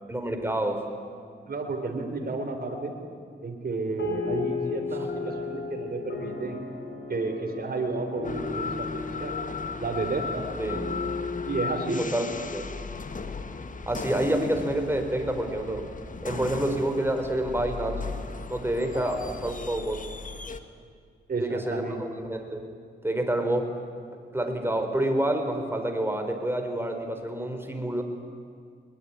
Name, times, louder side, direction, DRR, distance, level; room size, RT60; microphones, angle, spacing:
voice 1, 0.1-0.9 10.6-10.8 12.0-12.3 12.5-12.6 13.9-15.9 16.2-18.0 18.5-20.0 21.4-22.7 23.0-23.7 24.3-28.0, right 1 dB, 10° right, 5 dB, 4.3 m, -28 dB
voice 2, 1.5-2.9 3.4-6.6 7.1-9.4 9.8-10.4 11.5-12.0 18.9-19.1 21.3-22.0, right 3 dB, 55° right, 3 dB, 3.7 m, -31 dB
sound 1, 4.0-13.7, left 5 dB, 70° left, 5.0 m, -35 dB
sound 2, 8.2-20.6, left 4 dB, 45° left, 1.7 m, -37 dB
22.0 x 21.0 x 9.9 m, 2.3 s
cardioid pair, 75°, 19 cm